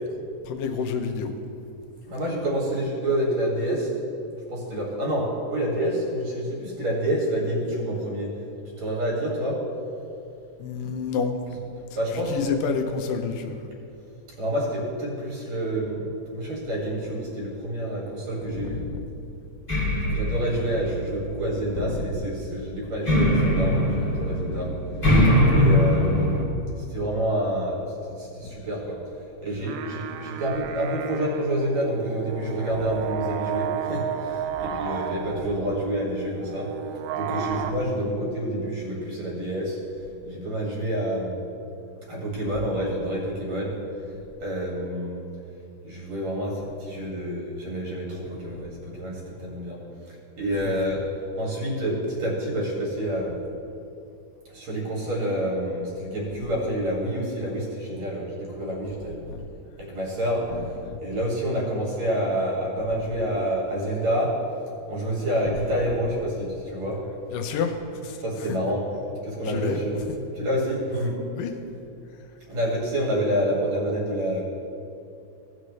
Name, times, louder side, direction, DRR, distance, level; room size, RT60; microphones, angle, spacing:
voice 1, 0.5-1.4 10.6-11.3 11.9-13.7 18.5-19.1 21.7-22.3 23.9-24.1 32.7-32.9 50.5-50.9 56.3-56.5 59.3-59.4 60.5-61.0 63.0-63.2 65.5-65.8 67.3-67.7 68.0-68.6 69.4-69.8 71.4-71.5, left 5 dB, 90° left, 4 dB, 2.5 m, -30 dB
voice 2, 2.1-3.9 4.5-8.3 8.8-9.6 12.0-12.4 14.4-18.8 20.1-24.8 25.6-26.4 26.9-27.9 28.2-29.0 29.4-36.7 37.1-39.8 40.2-41.4 42.1-43.8 44.4-45.2 45.8-49.8 50.4-51.0 51.4-53.4 54.5-59.2 59.8-60.5 61.0-64.4 64.9-67.1 68.2-68.9 69.2-70.0 70.3-71.2 72.5-74.4, right 1 dB, 55° right, -4 dB, 3.3 m, -28 dB
sound 1, 19.7-21.6 23.1-26.4, equal, 15° left, 1.2 m, -22 dB
sound 2, 29.5-37.7, right 9 dB, 85° right, 1.6 m, -33 dB
17.0 x 6.6 x 3.2 m, 2.6 s
omnidirectional pair, 3.8 m